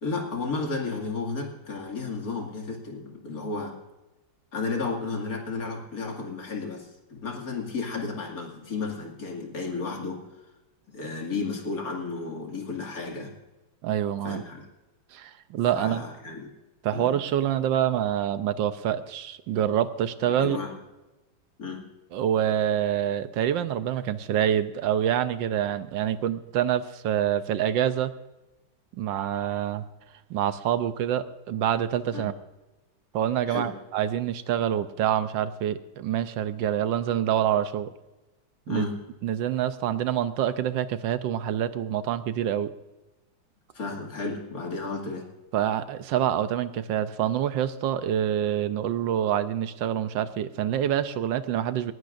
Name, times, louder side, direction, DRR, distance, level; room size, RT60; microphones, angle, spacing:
voice 1, 0.0-3.8 4.5-10.3 10.9-13.3 14.2-14.7 15.7-16.5 16.9-17.1 20.4-20.7 21.6-21.8 32.1-32.3 33.5-33.7 38.7-38.9 43.7-45.3, left 4 dB, 45° left, 0 dB, 2.7 m, -33 dB
voice 2, 13.8-14.4 15.1-16.0 16.8-20.6 22.1-28.1 28.9-29.9 30.3-32.3 33.1-37.9 38.7-38.9 39.2-42.7 45.5-51.9, right 10 dB, 75° right, 12 dB, 1.3 m, -26 dB
19.0 x 15.5 x 2.6 m, 1.0 s
omnidirectional pair, 2.1 m